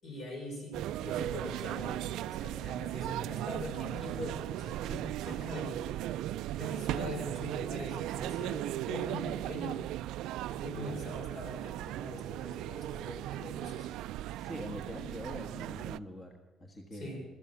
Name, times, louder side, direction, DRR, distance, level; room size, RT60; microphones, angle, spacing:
voice 1, 0.0-5.9 6.6-9.8 10.5-13.9 16.9-17.3, left 1 dB, 55° left, 1 dB, 6.2 m, -43 dB
sound 1, 0.7-16.0, right 13 dB, 80° right, 0.3 m, -37 dB
voice 2, 10.8-11.1 14.4-17.2, equal, 20° left, 2 dB, 1.4 m, -44 dB
14.0 x 14.0 x 5.7 m, 1.3 s
cardioid pair, 125°, 0 cm